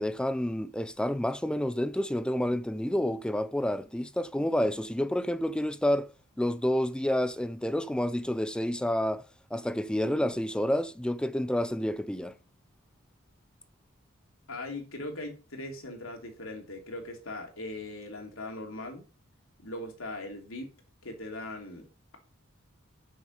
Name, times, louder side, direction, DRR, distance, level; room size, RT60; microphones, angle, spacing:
voice 1, 0.0-6.1 6.4-9.2 9.5-12.3, left 1 dB, 5° left, 0.4 m, -29 dB
voice 2, 14.5-19.0 19.6-20.7 21.0-21.8, left 2 dB, 70° left, 2.9 m, -40 dB
9.0 x 6.5 x 5.3 m
head